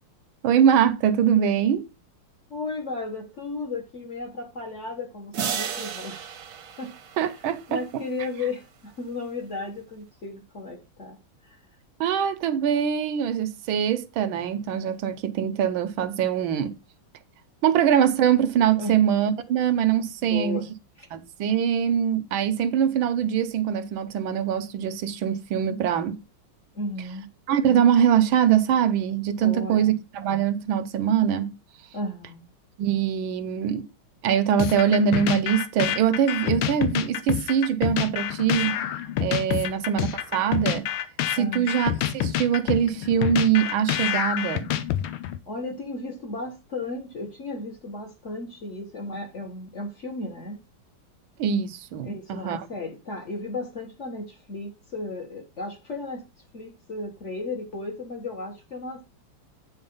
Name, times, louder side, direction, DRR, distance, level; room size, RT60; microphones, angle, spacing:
voice 1, 0.4-1.9 7.2-7.8 12.0-16.8 17.6-20.6 21.1-26.2 27.5-31.5 32.8-33.9 34.2-38.7 39.2-40.9 41.3-44.7 51.4-52.6, right 9 dB, 75° right, 1.5 m, -23 dB
voice 2, 2.5-6.3 6.8-6.9 7.7-11.2 11.4-11.6 18.8-19.1 20.2-20.7 21.0-21.1 26.7-27.3 29.4-29.9 31.9-32.5 39.5-39.8 41.4-41.7 45.5-50.6 52.0-56.2 56.5-59.0, left 3 dB, 40° left, 1.5 m, -34 dB
sound 1, 5.3-7.8, right 7 dB, 50° right, 1.1 m, -33 dB
sound 2, 34.6-45.4, left 11 dB, 80° left, 1.6 m, -27 dB
8.8 x 4.2 x 5.4 m
omnidirectional pair, 2.3 m